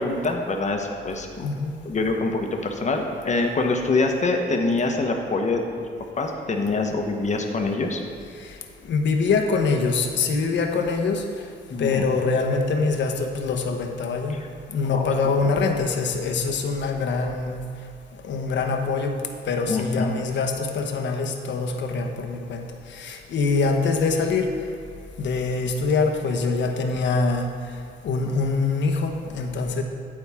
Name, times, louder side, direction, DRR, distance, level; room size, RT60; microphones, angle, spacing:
voice 1, 0.0-1.5 1.8-5.9 6.2-8.0 11.7-12.0 14.3-14.5 14.9-15.1 18.3-18.4 19.7-20.1, left 3 dB, 35° left, 3 dB, 1.1 m, -25 dB
voice 2, 8.8-11.3 11.8-14.4 14.7-17.6 18.2-19.1 19.5-24.5 25.2-27.5 28.0-29.8, left 4 dB, 65° left, 4 dB, 1.0 m, -24 dB
9.4 x 8.7 x 3.6 m, 2.3 s
cardioid pair, 90°, 20 cm